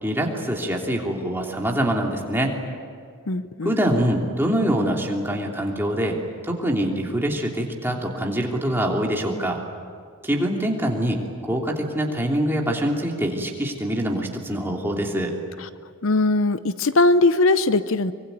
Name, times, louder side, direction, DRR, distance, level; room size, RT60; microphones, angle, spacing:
voice 1, 0.0-2.6 3.6-6.2 6.4-9.6 10.2-11.2 11.4-15.3, right 1 dB, 10° right, 0 dB, 3.1 m, -24 dB
voice 2, 3.3-3.8 15.6-15.7 16.0-18.1, left 2 dB, 65° left, 13 dB, 0.7 m, -20 dB
24.5 x 24.5 x 9.3 m, 2.2 s
head